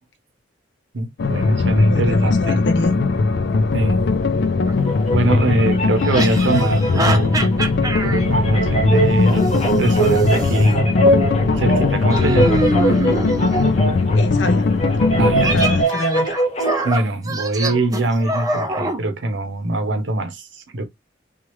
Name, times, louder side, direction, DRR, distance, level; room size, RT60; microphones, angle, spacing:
voice 1, 0.9-2.6 3.7-4.0 5.1-7.5 8.0-10.9 11.5-12.6 12.8-13.0 13.5-13.7 15.2-15.6 16.8-20.8, right 2 dB, 75° right, 0.7 m, -23 dB
sound 1, 1.2-15.8, left 3 dB, 60° left, 0.4 m, -19 dB
voice 2, 1.9-2.9 14.1-14.7 15.5-16.4, left 1 dB, 85° left, 1.0 m, -26 dB
sound 2, 4.7-4.8 6.0-8.2 9.5-10.6 12.1-13.6 15.4-19.0, right 2 dB, 20° right, 0.5 m, -25 dB
sound 3, 4.8-16.9, right 2 dB, 35° left, 0.9 m, -23 dB
3.0 x 2.4 x 3.0 m
head